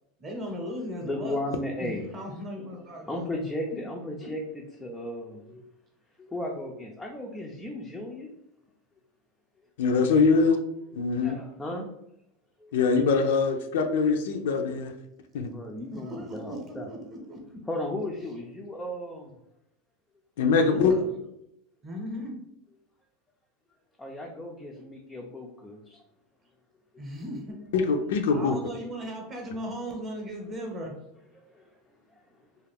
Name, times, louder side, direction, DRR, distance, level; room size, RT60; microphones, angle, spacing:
voice 1, 0.2-1.4 1.8-3.4 3.7-3.8 4.2-4.3 15.9-17.6 20.5-21.1 21.8-22.4 27.0-27.6 28.3-31.0, equal, 25° right, 1 dB, 0.8 m, -37 dB
voice 2, 1.1-2.4 3.1-5.6 6.2-8.3 11.2-11.9 12.6-12.8 15.4-16.9 17.7-19.3 24.0-26.0 31.5-31.7, left 1 dB, 10° left, -1 dB, 0.4 m, -35 dB
voice 3, 9.8-10.6 10.9-11.4 12.7-14.9 15.3-15.5 20.4-20.9 27.7-28.6, left 4 dB, 80° left, 5 dB, 0.4 m, -23 dB
2.4 x 2.4 x 3.3 m, 0.79 s
supercardioid pair, 145°, 0 cm